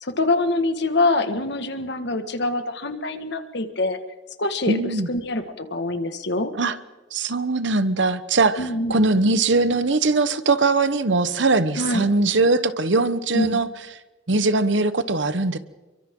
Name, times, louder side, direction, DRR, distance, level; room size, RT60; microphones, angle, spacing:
voice 1, 0.0-4.0 4.4-6.5 8.6-8.9 11.8-12.1 13.3-13.6, left 2 dB, 60° left, 8 dB, 1.9 m, -25 dB
voice 2, 4.7-5.1 6.6-6.8 7.1-13.7 14.3-15.6, right 3 dB, 70° right, 13 dB, 1.2 m, -21 dB
29.5 x 24.0 x 3.9 m, 1.2 s
head